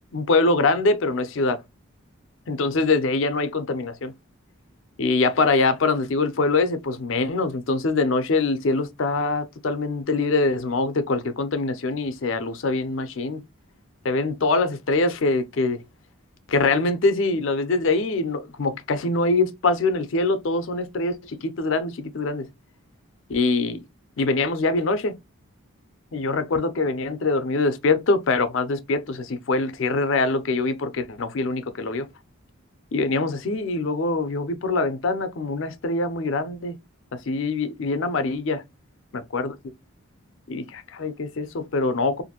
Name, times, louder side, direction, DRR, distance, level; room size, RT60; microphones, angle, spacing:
voice 1, 0.1-1.6 2.5-4.1 5.0-13.4 14.0-15.8 16.5-22.5 23.3-23.8 24.2-25.2 26.1-32.0 32.9-36.8 37.1-38.6 39.3-39.5 40.5-42.2, left 3 dB, 60° left, 0.5 m, -23 dB
2.5 x 2.5 x 2.8 m
head